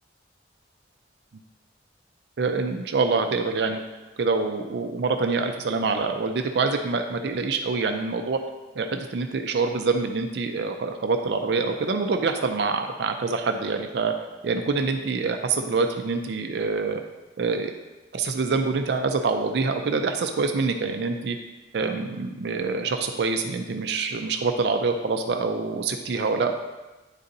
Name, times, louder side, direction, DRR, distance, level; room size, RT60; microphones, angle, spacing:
voice 1, 2.4-3.8 4.2-8.4 8.8-14.1 14.4-17.0 17.4-17.7 18.1-21.4 21.7-26.5, right 4 dB, 60° right, 5 dB, 0.4 m, -25 dB
9.7 x 4.0 x 2.6 m, 1.1 s
head